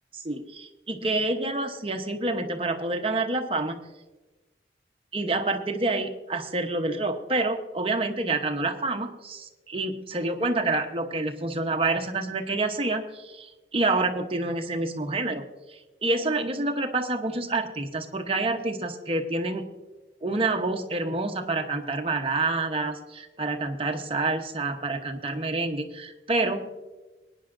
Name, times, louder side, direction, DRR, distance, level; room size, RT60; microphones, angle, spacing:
voice 1, 0.1-3.8 5.1-15.4 15.7-19.7 20.2-26.7, right 2 dB, 30° right, 4 dB, 0.8 m, -28 dB
21.5 x 9.8 x 2.6 m, 1.1 s
head